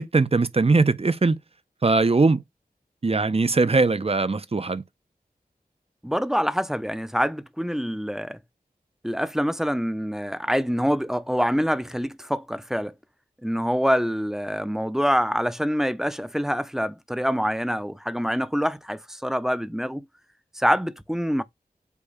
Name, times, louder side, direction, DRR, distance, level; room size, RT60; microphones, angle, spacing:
voice 1, 0.0-1.4 1.8-2.4 3.0-4.8, right 3 dB, 40° right, 0.8 m, -20 dB
voice 2, 6.0-8.4 9.0-12.9 13.4-20.1 20.5-21.4, equal, 5° right, 0.7 m, -25 dB
8.4 x 3.0 x 5.6 m
wide cardioid pair, 70°, 16 cm